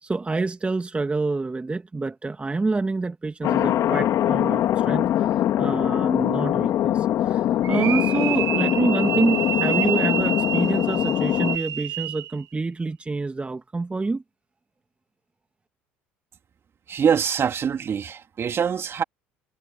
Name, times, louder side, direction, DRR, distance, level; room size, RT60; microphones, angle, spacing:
voice 1, 0.0-14.2, right 3 dB, 20° right, 1.6 m, -27 dB
Thunder, 3.4-11.6, left 12 dB, 55° left, 2.5 m, -22 dB
sound 1, 7.6-12.4, right 11 dB, 60° right, 2.4 m, -28 dB
voice 2, 16.9-19.0, right 7 dB, 40° right, 3.2 m, -24 dB
hypercardioid pair, 70°, 6 cm